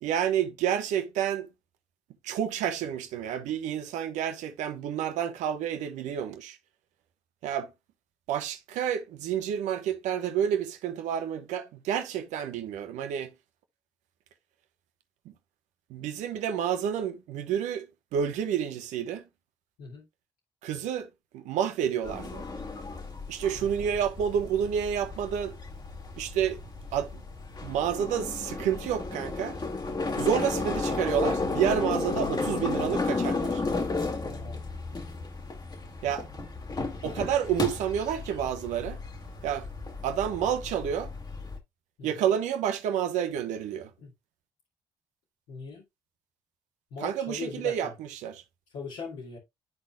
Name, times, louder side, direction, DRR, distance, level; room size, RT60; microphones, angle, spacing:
voice 1, 0.0-1.5 2.2-6.6 7.4-7.7 8.3-13.3 15.2-15.3 15.9-19.3 20.6-21.1 21.3-22.5 23.3-25.6 26.2-26.6 26.9-27.2 27.6-29.6 30.2-33.6 36.0-36.3 36.8-39.0 39.4-39.7 40.0-41.1 42.0-43.9 47.0-48.4, right 9 dB, 80° right, 1.1 m, -29 dB
sound 1, 22.0-41.6, left 3 dB, 35° left, 1.8 m, -33 dB
voice 2, 23.6-24.0 34.2-34.6 42.0-42.2 44.0-44.1 45.5-45.8 46.9-47.9 48.7-49.4, left 4 dB, 80° left, 2.4 m, -40 dB
12.0 x 4.2 x 2.2 m
supercardioid pair, 55°, 12 cm